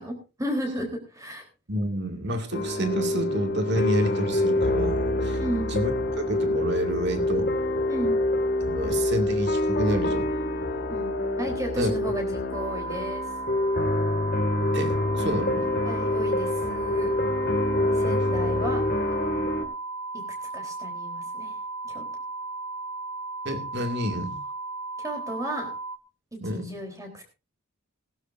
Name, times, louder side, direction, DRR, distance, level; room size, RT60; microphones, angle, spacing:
voice 1, 0.0-1.5 5.4-5.7 7.9-8.2 10.9-11.1 11.4-13.2 15.8-17.1 17.9-18.8 20.5-21.6 21.9-22.1 25.0-25.7 26.3-27.2, equal, 15° right, 3 dB, 3.8 m, -33 dB
voice 2, 1.7-5.4 5.7-7.5 8.7-10.3 11.8-11.9 14.7-15.7 18.4-18.5 19.4-19.5 23.4-24.4 26.4-26.7, equal, 50° right, 5 dB, 2.3 m, -29 dB
sound 1, 2.5-19.6, left 1 dB, 45° left, 2.2 m, -26 dB
sound 2, 12.5-26.0, right 3 dB, 80° right, 1.4 m, -35 dB
20.0 x 12.0 x 2.6 m, 0.30 s
head